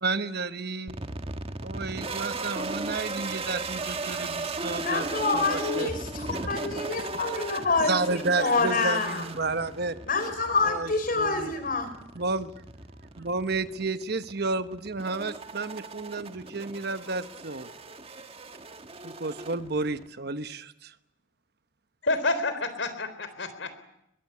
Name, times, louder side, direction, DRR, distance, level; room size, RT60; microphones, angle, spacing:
voice 1, 0.0-1.0 1.6-5.1 5.3-5.9 7.9-10.0 10.7-11.5 12.1-12.5 13.2-17.7 19.0-20.9, right 3 dB, 55° right, 11 dB, 1.1 m, -31 dB
sound 1, 0.9-20.1, right 3 dB, 30° right, 1.6 m, -37 dB
voice 2, 4.7-9.2 10.0-11.9, left 3 dB, 45° left, 10 dB, 4.9 m, -27 dB
voice 3, 22.0-23.8, left 2 dB, 70° left, 11 dB, 3.8 m, -29 dB
22.0 x 21.5 x 9.7 m, 0.81 s
head